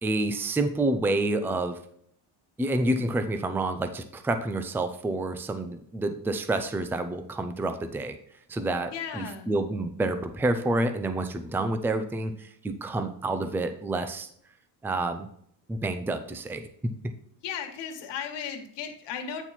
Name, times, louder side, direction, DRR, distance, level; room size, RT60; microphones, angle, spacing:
voice 1, 0.0-1.8 2.6-8.2 8.5-14.3 14.8-15.3 15.7-16.6, right 2 dB, 5° right, 9 dB, 0.4 m, -28 dB
voice 2, 8.9-9.5 17.4-19.4, left 7 dB, 85° left, 4 dB, 1.6 m, -35 dB
8.9 x 4.5 x 4.1 m, 0.65 s
cardioid pair, 155°, 42 cm